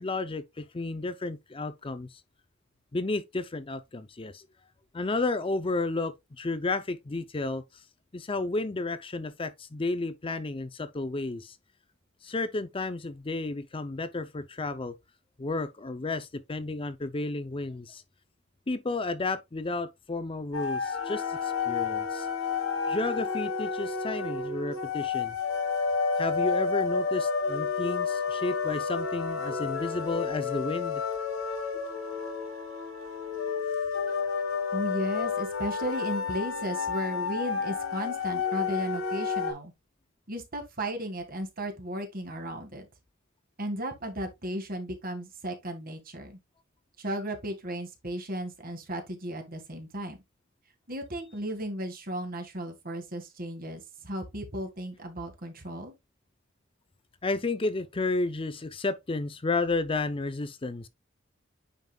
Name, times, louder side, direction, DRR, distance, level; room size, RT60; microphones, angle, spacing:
voice 1, 0.0-2.2 2.9-4.5 4.9-7.6 8.1-11.6 12.2-15.0 15.4-18.0 18.7-22.3 22.9-25.3 26.2-31.0 57.2-60.9, left 3 dB, 25° left, 0.5 m, -32 dB
sound 1, 20.5-39.5, left 5 dB, 80° left, 2.2 m, -30 dB
voice 2, 34.7-39.7 40.3-42.9 43.6-46.4 47.0-50.2 50.9-56.0, right 1 dB, 45° right, 2.0 m, -35 dB
9.2 x 5.2 x 2.3 m
head